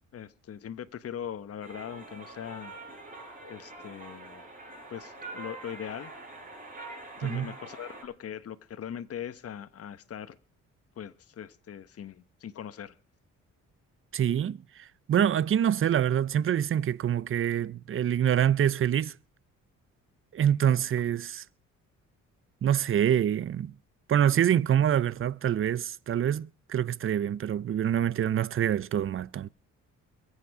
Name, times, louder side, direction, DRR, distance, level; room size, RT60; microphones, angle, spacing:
voice 1, 0.1-2.8 3.5-4.5 4.9-6.1 7.2-10.4 11.0-13.0, left 9 dB, 50° left, 1.2 m, -40 dB
sound 1, 1.6-8.0, right 2 dB, 30° right, 6.4 m, -45 dB
voice 2, 14.1-14.6 15.1-19.1 20.3-21.4 22.6-23.7 24.1-29.5, right 10 dB, 45° right, 0.7 m, -25 dB
22.5 x 8.6 x 4.9 m
cardioid pair, 90°, 30 cm